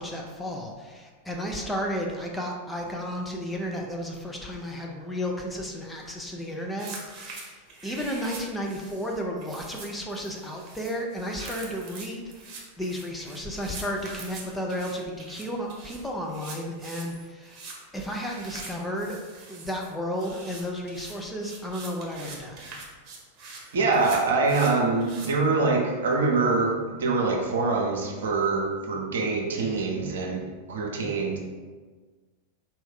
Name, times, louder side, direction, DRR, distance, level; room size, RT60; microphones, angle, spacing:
voice 1, 0.0-12.3 12.8-17.6 17.9-19.2 19.5-22.8, equal, 5° left, 0 dB, 0.6 m, -33 dB
sound 1, 6.8-25.3, right 3 dB, 35° right, 1.0 m, -44 dB
voice 2, 23.7-30.4 30.7-31.4, right 3 dB, 65° right, 0 dB, 0.7 m, -24 dB
4.2 x 2.6 x 3.7 m, 1.4 s
figure-of-eight pair, 90°, 0 cm